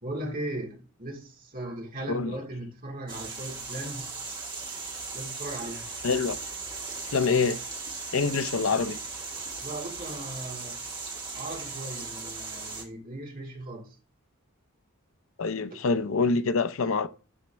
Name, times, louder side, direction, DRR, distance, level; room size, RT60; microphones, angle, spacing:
voice 1, 0.0-4.1 5.1-5.9 8.2-8.5 9.6-10.8 11.3-14.0, right 1 dB, 40° right, 2.2 m, -38 dB
sound 1, 3.1-12.8, right 4 dB, 20° right, 1.8 m, -38 dB
voice 2, 6.0-6.4 7.1-7.6 8.1-9.0 15.4-17.1, left 4 dB, 65° left, 0.6 m, -25 dB
12.0 x 4.2 x 3.4 m
head